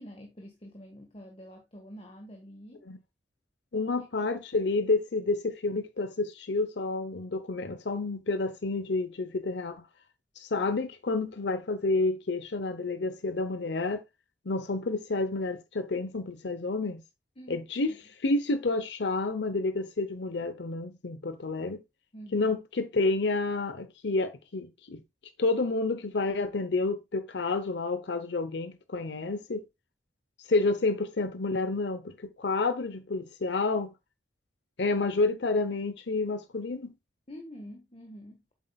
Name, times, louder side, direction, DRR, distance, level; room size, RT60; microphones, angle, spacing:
voice 1, 0.0-2.9 3.7-4.3 17.4-17.9 22.1-22.5 37.3-38.4, equal, 30° left, 1.4 m, -47 dB
voice 2, 3.7-9.8 10.4-14.0 14.5-17.0 17.5-17.9 18.2-21.8 22.3-25.0 25.4-29.6 30.5-33.9 34.8-36.9, left 3 dB, 70° left, 0.7 m, -29 dB
8.3 x 7.6 x 2.3 m
head